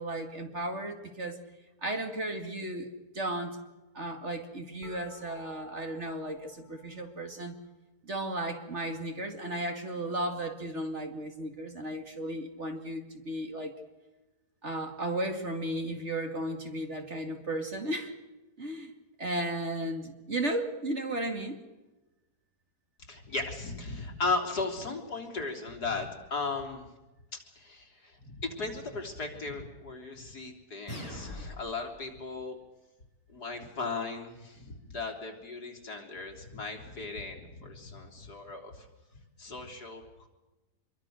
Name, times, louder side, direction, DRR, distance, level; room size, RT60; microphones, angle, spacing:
voice 1, 0.0-1.4 1.8-2.9 3.1-3.6 3.9-7.6 8.0-13.8 14.6-18.1 18.6-18.9 19.2-21.6, right 1 dB, 40° right, 5 dB, 2.7 m, -34 dB
sound 1, 4.8-7.7, left 6 dB, 25° right, 5.5 m, -55 dB
voice 2, 23.1-26.9 27.3-32.6 33.3-38.9 39.4-40.3, left 3 dB, 70° left, 2 dB, 4.0 m, -36 dB
sound 2, 30.9-31.9, left 1 dB, 20° left, 8.1 m, -41 dB
26.0 x 23.0 x 6.5 m, 1.1 s
omnidirectional pair, 1.8 m